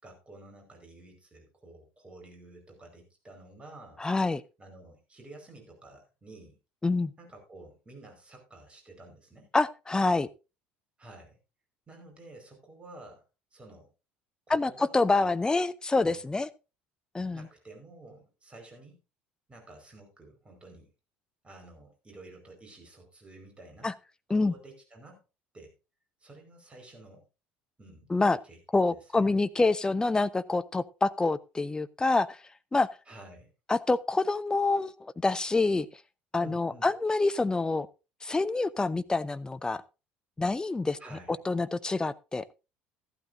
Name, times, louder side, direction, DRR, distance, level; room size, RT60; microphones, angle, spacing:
voice 1, 0.0-4.0 4.6-6.6 7.2-9.5 11.0-11.4 11.9-13.2 13.5-13.9 14.5-14.9 15.2-15.3 16.0-16.2 17.3-19.0 19.5-20.9 21.4-23.9 24.3-25.2 25.5-25.7 26.2-27.2 27.8-28.1 28.4-28.6 28.9-29.4 33.1-33.5 36.4-36.9 41.0-41.4, right 2 dB, 20° right, 3 dB, 5.1 m, -51 dB
voice 2, 4.0-4.4 6.8-7.1 9.5-10.3 14.5-16.5 17.1-17.5 23.8-23.9 24.3-24.5 28.1-28.4 28.7-32.4 32.7-32.9 33.7-35.9 36.3-37.9 38.2-39.8 40.4-41.0 41.4-42.4, left 3 dB, 15° left, 13 dB, 0.7 m, -26 dB
14.0 x 12.0 x 2.7 m, 0.29 s
figure-of-eight pair, 60°, 5 cm